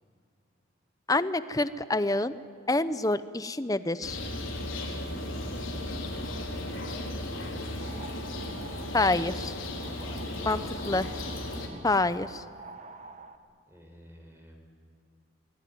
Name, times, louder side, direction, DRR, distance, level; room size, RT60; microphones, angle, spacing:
voice 1, 1.1-2.3 2.7-4.2 8.9-9.6 10.5-10.6 10.9-11.1 11.8-12.4, left 2 dB, 20° left, 14 dB, 0.7 m, -27 dB
sound 1, 4.0-11.7, left 1 dB, 85° left, 4.4 m, -35 dB
voice 2, 6.3-7.9 10.0-10.7 13.7-14.6, equal, 15° right, 2 dB, 4.5 m, -50 dB
sound 2, 7.4-13.4, right 3 dB, 35° right, 1.4 m, -48 dB
25.0 x 20.5 x 9.5 m, 2.3 s
head